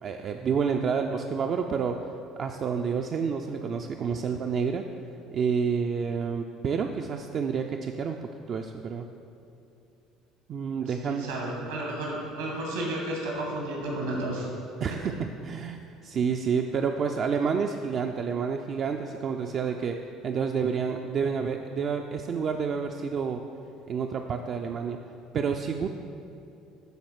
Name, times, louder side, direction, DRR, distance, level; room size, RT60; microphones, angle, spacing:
voice 1, 0.0-2.0 2.4-4.9 5.3-8.2 8.5-9.1 10.5-11.3 14.8-15.1 15.4-20.0 20.2-23.4 23.9-25.0 25.3-25.9, right 6 dB, 45° right, 4 dB, 0.4 m, -29 dB
voice 2, 10.8-14.5, right 1 dB, 80° right, -2 dB, 2.0 m, -32 dB
12.0 x 4.2 x 4.7 m, 2.7 s
figure-of-eight pair, 60°, 0 cm